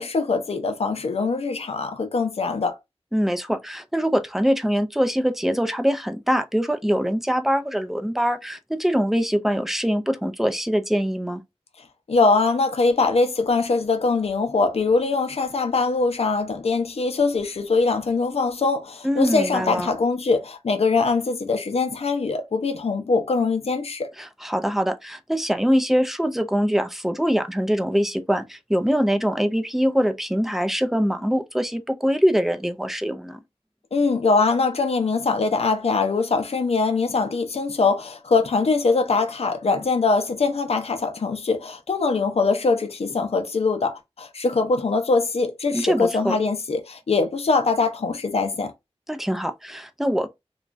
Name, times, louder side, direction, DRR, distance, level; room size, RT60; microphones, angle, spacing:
voice 1, 0.0-2.8 12.1-24.1 33.9-48.7, left 4 dB, 70° left, 0.5 m, -22 dB
voice 2, 3.1-11.4 19.0-19.9 24.2-33.4 45.7-46.4 49.1-50.3, equal, 5° right, 0.4 m, -23 dB
3.0 x 2.3 x 2.4 m
wide cardioid pair, 80°, 11 cm